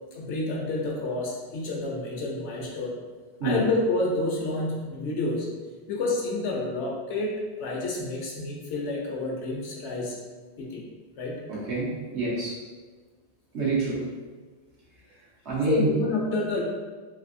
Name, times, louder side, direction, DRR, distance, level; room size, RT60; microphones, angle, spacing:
voice 1, 0.1-2.9 3.4-5.5 5.9-10.2 10.6-10.8 11.2-11.4 15.6-16.6, left 2 dB, 80° left, -2 dB, 1.0 m, -29 dB
voice 2, 11.5-12.5 13.5-14.0 15.4-15.9, right 3 dB, 75° right, -7 dB, 1.2 m, -27 dB
3.3 x 2.6 x 2.5 m, 1.4 s
omnidirectional pair, 1.2 m